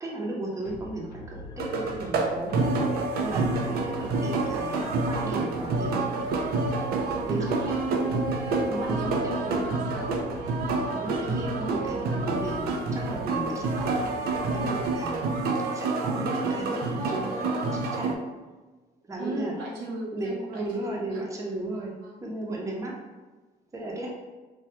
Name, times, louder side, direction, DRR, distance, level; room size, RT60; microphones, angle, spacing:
voice 1, 0.0-2.7 3.2-5.9 7.2-8.3 8.7-9.6 10.9-14.1 14.5-15.3 15.7-18.2 19.0-19.6 20.1-21.9 22.2-22.9 23.7-24.1, right 2 dB, 20° right, -2 dB, 0.6 m, -35 dB
sound 1, 0.6-15.7, left 1 dB, 75° left, 0.7 m, -43 dB
sound 2, 1.6-18.1, right 3 dB, 65° right, 0.4 m, -28 dB
voice 2, 7.4-7.9 8.8-10.1 19.2-21.2 22.0-22.2, right 1 dB, 85° right, -2 dB, 0.8 m, -37 dB
3.2 x 2.2 x 2.8 m, 1.3 s
cardioid pair, 110°, 17 cm